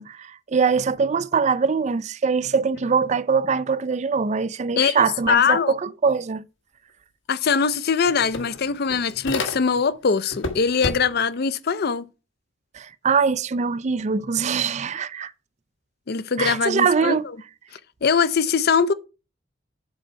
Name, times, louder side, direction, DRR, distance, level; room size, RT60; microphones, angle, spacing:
voice 1, 0.0-6.4 12.7-15.3 16.4-17.3, right 5 dB, 35° right, 0.4 m, -23 dB
voice 2, 4.8-5.8 7.3-12.0 16.1-17.2 18.0-18.9, left 6 dB, 50° left, 0.5 m, -22 dB
Coffee Machine - Empty, 7.3-7.4 7.7-10.0 10.3-11.3, left 3 dB, 70° left, 1.2 m, -31 dB
7.6 x 4.4 x 5.7 m
head